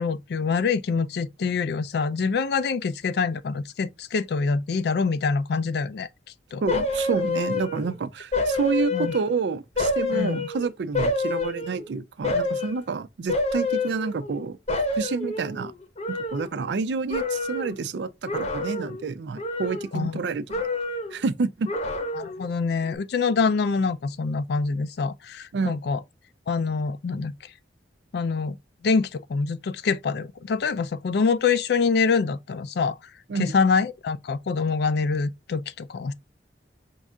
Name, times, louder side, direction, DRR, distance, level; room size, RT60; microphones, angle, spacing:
voice 1, 0.0-6.1 6.5-6.6 8.9-9.1 10.1-10.5 19.9-20.2 22.1-26.0 26.5-27.3 28.1-28.6 28.8-33.0 33.4-36.1, left 5 dB, 65° left, 0.4 m, -25 dB
voice 2, 6.6-14.6 15.0-15.7 16.1-20.6 21.1-21.7 25.5-25.8 33.3-33.5, right 4 dB, 75° right, 0.4 m, -29 dB
sound 1, 6.7-8.0 8.3-9.4 9.8-11.9 12.2-12.8 13.3-14.4 14.7-16.8 17.1-17.8 18.3-19.1 19.4-20.2 20.5-21.2 21.7-22.5 22.8-22.9, left 2 dB, 35° left, 0.8 m, -28 dB
5.3 x 2.4 x 3.5 m
head